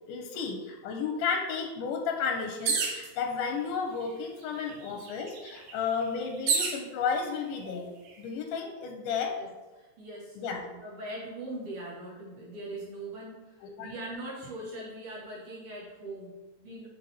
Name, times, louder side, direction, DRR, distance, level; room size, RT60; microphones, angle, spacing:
voice 1, 0.1-7.9 8.2-9.4 10.4-10.7 13.6-13.9, left 5 dB, 85° left, 3 dB, 2.2 m, -32 dB
sound 1, 2.6-3.1 4.0-4.1 4.4-6.8 7.6-8.1, right 5 dB, 70° right, 2.0 m, -30 dB
voice 2, 4.6-5.0 9.4-9.5 9.8-16.9, right 1 dB, 55° right, -6 dB, 2.2 m, -41 dB
6.2 x 4.1 x 4.1 m, 1.2 s
omnidirectional pair, 3.7 m